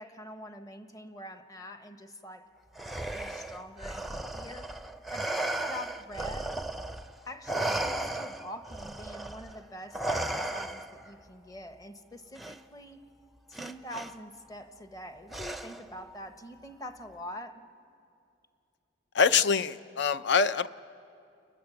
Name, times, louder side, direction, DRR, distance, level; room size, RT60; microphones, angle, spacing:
voice 1, 0.0-2.4 3.1-4.7 5.1-6.6 7.2-13.0 13.5-17.6, equal, 20° left, 8 dB, 1.0 m, -44 dB
Respiratory sounds, 2.8-7.1 7.5-11.1 12.4-12.6 13.5-14.1 15.3-15.9, right 2 dB, ahead, 0.5 m, -35 dB
voice 2, 19.1-20.7, left 6 dB, 65° left, 14 dB, 0.5 m, -24 dB
29.5 x 21.0 x 7.0 m, 2.5 s
head